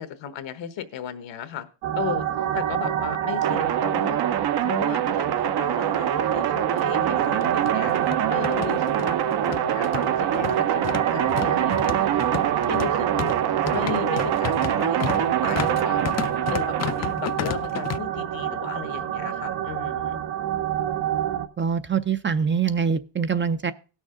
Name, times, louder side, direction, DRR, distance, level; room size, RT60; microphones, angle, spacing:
voice 1, 0.0-1.7 2.0-2.3 2.5-4.2 4.6-8.0 8.3-9.2 9.5-12.3 12.7-13.3 13.7-20.2, left 9 dB, 80° left, 11 dB, 1.2 m, -35 dB
sound 1, 1.8-21.5, right 11 dB, 80° right, 1.0 m, -28 dB
sound 2, 3.4-17.1, right 10 dB, 60° right, 0.7 m, -25 dB
sound 3, 5.9-6.0 6.3-6.4 7.2-18.0, left 10 dB, 40° left, 0.4 m, -33 dB
voice 2, 21.6-23.7, right 6 dB, 25° right, 12 dB, 0.4 m, -24 dB
17.5 x 6.3 x 3.7 m, 0.35 s
cardioid pair, 105°, 44 cm